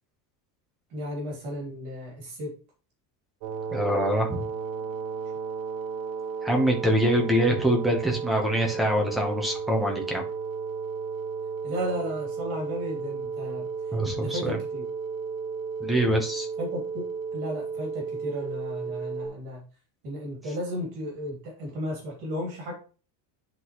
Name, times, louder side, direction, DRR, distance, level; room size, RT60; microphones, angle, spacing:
voice 1, 0.9-2.6 11.6-13.7 14.1-14.9 16.6-19.6 20.0-22.7, equal, 55° right, -1 dB, 3.2 m, -34 dB
sound 1, 3.4-19.3, right 5 dB, 80° right, 1.2 m, -33 dB
voice 2, 3.7-4.4 6.4-10.2 13.9-14.6 15.8-16.5, equal, ahead, 0 dB, 1.0 m, -24 dB
10.5 x 4.0 x 3.1 m, 0.36 s
cardioid pair, 175°, 46 cm